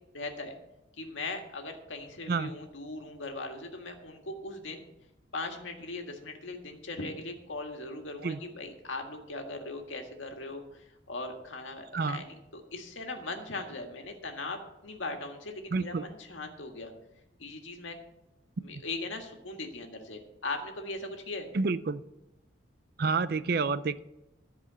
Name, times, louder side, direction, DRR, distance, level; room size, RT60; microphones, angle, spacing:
voice 1, 0.1-0.6 1.0-4.8 5.3-16.9 17.4-18.0 18.6-21.5, left 2 dB, 85° left, 3 dB, 1.8 m, -39 dB
voice 2, 15.7-16.0 21.5-22.0 23.0-24.0, right 4 dB, 50° right, 15 dB, 0.4 m, -29 dB
14.0 x 4.9 x 8.1 m, 0.91 s
head